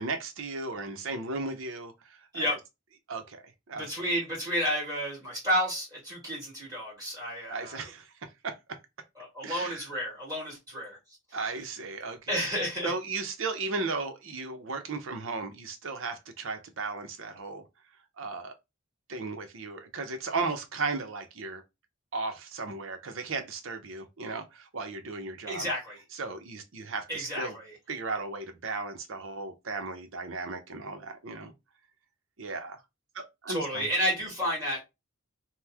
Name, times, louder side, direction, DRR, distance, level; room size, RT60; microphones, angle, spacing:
voice 1, 0.0-2.5 3.1-3.9 7.5-8.1 8.4-8.8 9.4-9.9 11.3-12.5 12.8-17.6 18.2-18.5 19.1-21.6 22.1-25.7 26.1-27.6 27.9-31.5 32.4-32.8 33.1-33.9, right 3 dB, 65° right, 0.6 m, -35 dB
voice 2, 3.7-7.8 9.2-11.0 11.3-11.4 12.3-12.9 25.5-26.0 27.1-27.7 33.5-34.8, equal, 15° right, 1.6 m, -31 dB
3.0 x 2.0 x 3.4 m
head